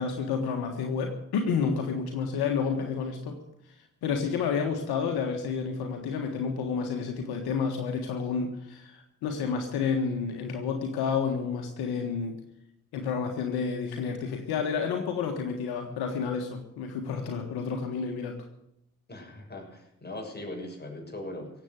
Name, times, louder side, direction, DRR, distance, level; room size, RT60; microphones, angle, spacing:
voice 1, 0.0-3.4 4.0-12.4 12.9-18.4, left 5 dB, 85° left, 4 dB, 1.6 m, -30 dB
voice 2, 19.1-21.5, left 1 dB, 25° left, 1 dB, 6.7 m, -40 dB
17.0 x 8.2 x 9.4 m, 0.79 s
supercardioid pair, 45°, 37 cm